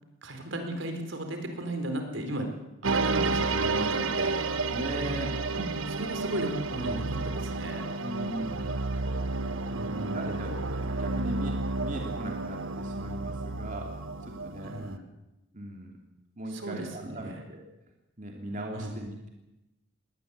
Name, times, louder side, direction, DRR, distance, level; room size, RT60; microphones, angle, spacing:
voice 1, 0.2-2.5 2.8-4.4 5.5-7.8 9.7-10.5 14.6-15.0 16.5-17.4 18.7-18.9, right 1 dB, 70° right, 5 dB, 4.3 m, -35 dB
sound 1, 2.8-15.0, right 3 dB, 90° right, 1.3 m, -31 dB
voice 2, 4.7-5.4 8.0-8.8 9.9-14.8 15.5-16.0 16.4-17.7 18.2-19.3, right 1 dB, 40° right, 1 dB, 2.9 m, -38 dB
22.0 x 18.5 x 8.2 m, 0.97 s
head